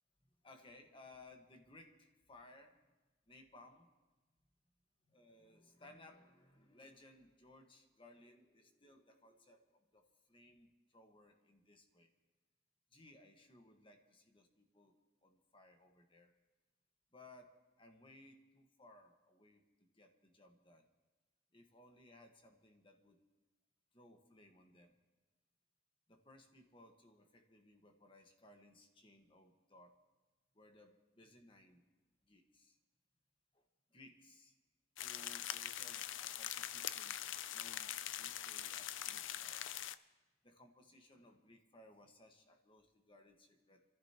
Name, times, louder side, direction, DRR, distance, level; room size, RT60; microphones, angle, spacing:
voice 1, 0.4-2.8 3.3-3.9 5.1-12.1 12.9-15.0 15.2-16.3 17.1-20.9 21.5-23.2 23.9-24.9 26.1-30.0 30.5-31.8 32.2-32.8 33.5-33.6 33.9-34.6 35.0-37.2 37.5-39.7 40.4-43.8, left 2 dB, 25° left, 4 dB, 1.5 m, -62 dB
sound 1, 35.0-40.0, left 11 dB, 85° left, 0.5 m, -43 dB
26.5 x 14.5 x 3.0 m, 1.2 s
head